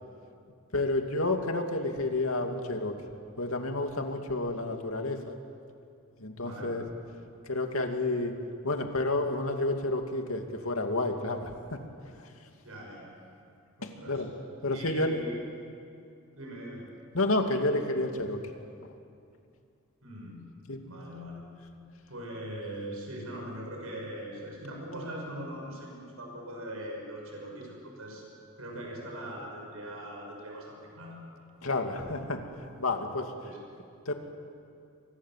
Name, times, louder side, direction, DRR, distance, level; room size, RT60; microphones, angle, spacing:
voice 1, 0.7-3.0 3.4-5.3 6.2-6.8 7.5-8.4 8.6-11.8 13.8-14.3 14.6-15.2 17.1-18.4 18.8-18.9 20.7-20.8 31.6-32.4 32.8-33.3 34.1-34.2, left 2 dB, 80° left, 4 dB, 2.5 m, -30 dB
voice 2, 6.4-6.8 12.6-13.1 13.8-14.2 14.7-15.4 16.3-16.9 20.0-20.5 20.8-21.4 22.1-28.2 28.6-31.2 33.4-33.6, right 1 dB, 85° right, 0 dB, 6.5 m, -41 dB
29.0 x 24.0 x 7.6 m, 2.5 s
head